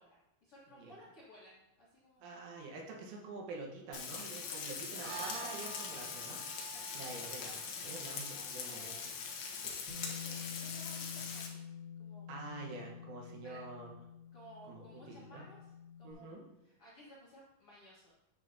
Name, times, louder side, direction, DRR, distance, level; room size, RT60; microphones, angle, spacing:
voice 1, 0.0-2.4 4.4-4.8 5.9-6.1 6.5-7.0 8.0-9.1 10.0-11.6 12.0-12.3 13.4-13.6 14.3-18.1, equal, 90° left, -6 dB, 1.2 m, -58 dB
voice 2, 2.2-6.4 7.0-9.0 12.3-13.9 14.7-15.4 16.0-16.5, right 3 dB, 80° right, -1 dB, 3.8 m, -47 dB
Frying (food), 3.9-11.5, left 6 dB, 70° left, 2.4 m, -42 dB
sound 1, 5.0-9.7, right 4 dB, 65° right, 2.7 m, -50 dB
Bass guitar, 9.9-16.1, left 7 dB, 35° left, 1.9 m, -48 dB
9.9 x 7.5 x 2.8 m, 0.92 s
omnidirectional pair, 5.5 m